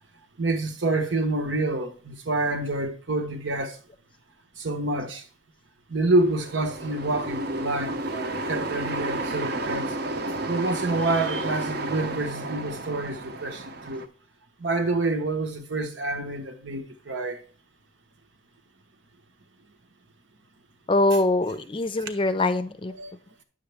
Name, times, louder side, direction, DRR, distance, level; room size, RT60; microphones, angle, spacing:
voice 1, 0.4-3.8 4.6-5.2 5.9-9.9 10.5-14.0 14.6-17.4 23.0-23.1, right 2 dB, 90° right, 1.2 m, -27 dB
sound 1, 6.2-14.1, right 2 dB, 60° right, 0.8 m, -32 dB
voice 2, 20.9-23.0, left 2 dB, 30° left, 0.5 m, -23 dB
9.2 x 7.1 x 3.4 m
head